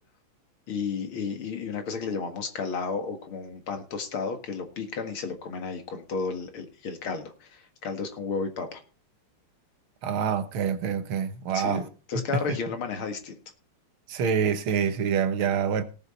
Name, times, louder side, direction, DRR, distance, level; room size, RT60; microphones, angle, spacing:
voice 1, 0.7-8.8 11.5-13.4, left 5 dB, 80° left, 2.6 m, -33 dB
voice 2, 10.0-11.8 12.2-12.3 14.1-15.8, right 7 dB, 80° right, 2.0 m, -26 dB
18.0 x 7.0 x 4.3 m
omnidirectional pair, 2.3 m